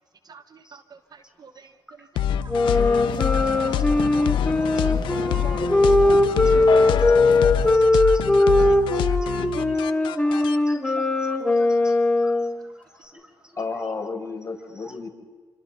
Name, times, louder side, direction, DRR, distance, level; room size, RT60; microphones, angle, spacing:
voice 1, 0.3-1.7 2.0-2.5 3.7-3.8 5.9-6.0, right 6 dB, 55° right, 10 dB, 1.3 m, -48 dB
sound 1, 2.2-10.6, left 9 dB, 85° left, 0.7 m, -26 dB
Wind instrument woodwind instrument, 2.5-12.5, left 2 dB, 15° left, 4.5 m, -20 dB
sound 2, 2.6-7.7, left 8 dB, 70° left, 1.4 m, -31 dB
voice 2, 3.7-4.2 4.8-4.9 5.6-5.7 6.1-6.6 7.6-12.5 13.0-13.3 14.8-14.9, equal, 10° right, 2 dB, 6.1 m, -47 dB
voice 3, 13.6-15.1, left 4 dB, 40° left, 0 dB, 6.5 m, -31 dB
29.5 x 26.5 x 4.0 m, 1.5 s
supercardioid pair, 55°, 8 cm